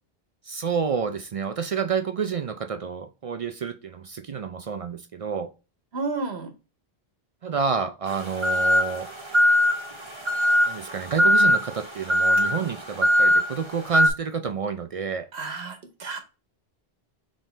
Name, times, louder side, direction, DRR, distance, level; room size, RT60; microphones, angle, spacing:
voice 1, 0.5-5.5 7.4-9.1 10.7-15.3, right 6 dB, 55° right, 0.4 m, -29 dB
voice 2, 5.9-6.5 15.3-16.2, right 3 dB, 90° right, 1.2 m, -31 dB
sound 1, 8.1-14.1, left 1 dB, 30° right, 1.0 m, -21 dB
4.6 x 3.6 x 3.1 m
omnidirectional pair, 1.1 m